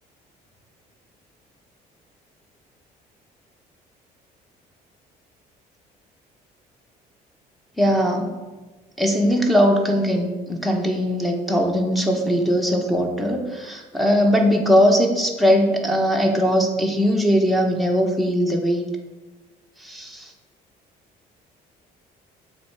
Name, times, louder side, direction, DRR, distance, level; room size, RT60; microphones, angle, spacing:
voice 1, 7.8-8.3 9.0-18.8 19.8-20.3, equal, ahead, 0 dB, 0.9 m, -20 dB
7.1 x 3.3 x 4.6 m, 1.2 s
cardioid pair, 110°, 17 cm